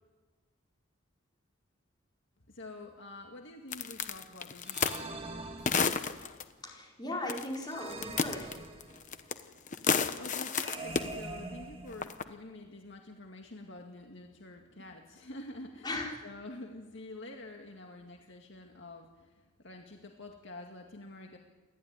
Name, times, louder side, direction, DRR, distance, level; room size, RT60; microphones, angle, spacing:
voice 1, 2.5-5.7 10.2-21.4, left 2 dB, 60° left, 2 dB, 2.1 m, -48 dB
sound 1, 3.7-5.0 5.7-6.4 7.3-7.6 7.9-9.4 9.7-11.1 11.9-12.2, left 5 dB, 40° left, 1.1 m, -30 dB
sound 2, 4.6-6.3 7.6-9.3 10.5-12.4, right 3 dB, 25° right, 2.1 m, -44 dB
voice 2, 6.6-8.5 15.8-16.2, left 1 dB, 20° left, -2 dB, 4.9 m, -37 dB
28.5 x 12.5 x 9.9 m, 1.4 s
head